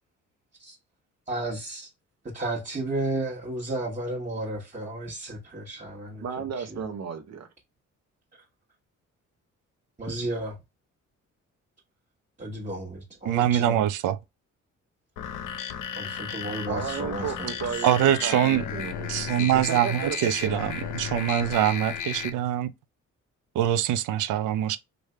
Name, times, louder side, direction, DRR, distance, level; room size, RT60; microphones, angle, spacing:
voice 1, 1.3-1.9 2.3-6.2 6.6-6.8 10.0-10.5 12.4-13.8 16.0-17.8, right 2 dB, 25° right, 1.3 m, -33 dB
voice 2, 6.2-7.5 16.7-20.5, right 7 dB, 60° right, 0.9 m, -34 dB
voice 3, 13.3-14.2 17.8-18.6 19.1-22.7 23.6-24.8, right 11 dB, 90° right, 0.5 m, -24 dB
sound 1, 15.2-22.3, left 8 dB, 85° left, 0.6 m, -34 dB
3.3 x 2.6 x 3.2 m
cardioid pair, 90°, 30 cm